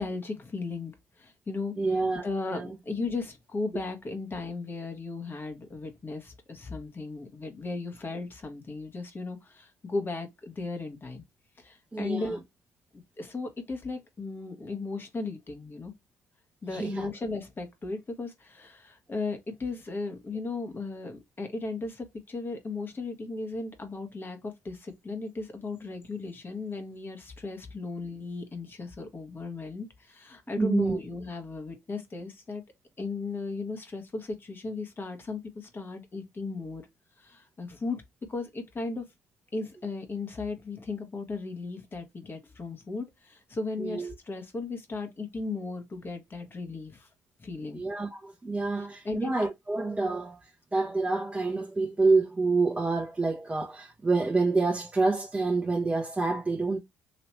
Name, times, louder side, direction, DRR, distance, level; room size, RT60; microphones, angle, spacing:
voice 1, 0.0-11.2 11.6-12.4 12.9-15.9 16.6-32.6 33.0-36.8 37.2-38.0 38.3-39.1 39.5-47.1 47.4-47.8 48.8-49.3, left 3 dB, 30° left, 1.3 m, -36 dB
voice 2, 1.8-2.3 2.5-2.7 11.9-12.4 16.7-17.1 30.6-31.0 43.8-44.1 47.7-56.8, right 3 dB, 15° right, 0.9 m, -27 dB
3.2 x 2.9 x 3.0 m
hypercardioid pair, 60°, 7 cm